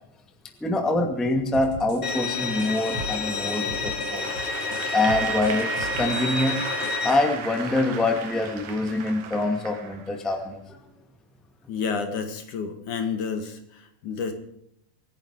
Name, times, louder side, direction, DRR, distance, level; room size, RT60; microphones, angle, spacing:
voice 1, 0.6-6.6 7.0-10.8, left 2 dB, ahead, 4 dB, 1.5 m, -25 dB
sound 1, 1.5-7.2, right 1 dB, 50° right, 3.4 m, -38 dB
Bowed string instrument, 2.0-7.1, left 3 dB, 30° left, 1.4 m, -29 dB
Applause / Crowd, 4.1-10.3, right 6 dB, 85° right, 3.4 m, -36 dB
voice 2, 11.7-14.3, left 5 dB, 70° left, 7 dB, 3.4 m, -30 dB
25.5 x 10.5 x 4.9 m, 0.71 s
omnidirectional pair, 3.6 m